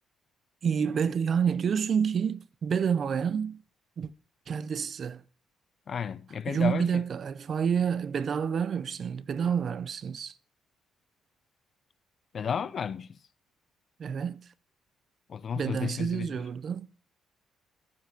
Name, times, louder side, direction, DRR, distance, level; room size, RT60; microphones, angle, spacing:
voice 1, 0.6-3.6 4.0-4.1 4.5-5.2 6.5-10.3 14.0-14.5 15.5-16.9, right 7 dB, 40° right, 0.5 m, -28 dB
voice 2, 5.9-7.0 12.3-13.2 15.3-16.3, left 7 dB, 40° left, 0.5 m, -33 dB
14.0 x 8.0 x 5.1 m
cardioid pair, 155°, 0 cm